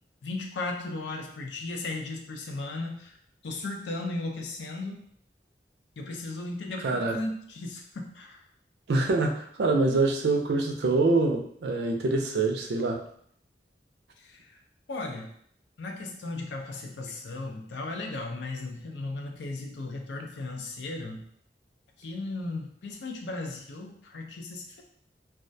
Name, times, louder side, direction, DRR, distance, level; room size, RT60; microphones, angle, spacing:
voice 1, 0.2-3.2 3.4-5.0 6.0-8.4 14.2-14.6 14.9-15.3 15.8-21.2 22.0-24.8, left 2 dB, 85° left, 2 dB, 0.5 m, -36 dB
voice 2, 6.8-7.1 8.9-13.0, right 3 dB, 70° right, 3 dB, 0.4 m, -25 dB
2.3 x 2.1 x 2.6 m, 0.65 s
head